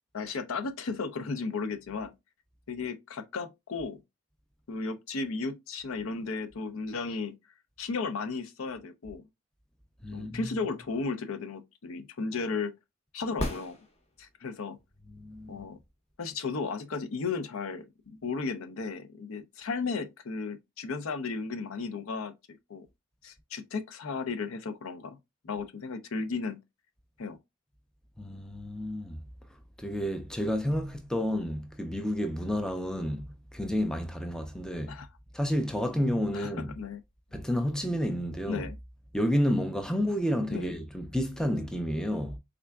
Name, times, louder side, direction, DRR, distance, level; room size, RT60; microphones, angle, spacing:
voice 1, 0.1-2.1 2.7-4.0 4.7-7.4 7.8-9.3 10.1-12.8 13.1-13.8 14.2-14.8 15.5-15.8 16.2-22.9 23.2-25.2 25.4-26.6 27.2-27.4 34.9-35.1 36.3-37.0 38.4-38.8 40.5-40.7, left 4 dB, 70° left, 0.5 m, -34 dB
voice 2, 10.0-10.4 15.1-15.7 28.2-29.2 29.8-35.0 35.3-36.7 37.3-38.7 39.1-42.4, equal, 5° left, 0.4 m, -30 dB
sound 1, 13.4-14.5 18.4-18.5, left 1 dB, 30° left, 0.7 m, -35 dB
3.7 x 3.3 x 2.2 m
head